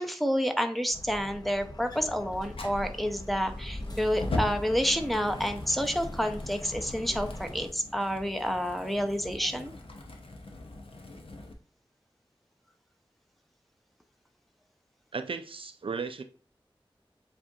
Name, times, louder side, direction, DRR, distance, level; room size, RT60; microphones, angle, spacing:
voice 1, 0.0-9.7, equal, ahead, 6 dB, 0.6 m, -29 dB
sound 1, 0.9-7.7, left 1 dB, 45° left, 0.8 m, -41 dB
Fire, 2.5-11.5, left 2 dB, 80° left, 0.7 m, -41 dB
voice 2, 15.1-16.2, right 5 dB, 70° right, 9 dB, 0.4 m, -35 dB
7.3 x 2.4 x 2.7 m, 0.41 s
wide cardioid pair, 60°, 9 cm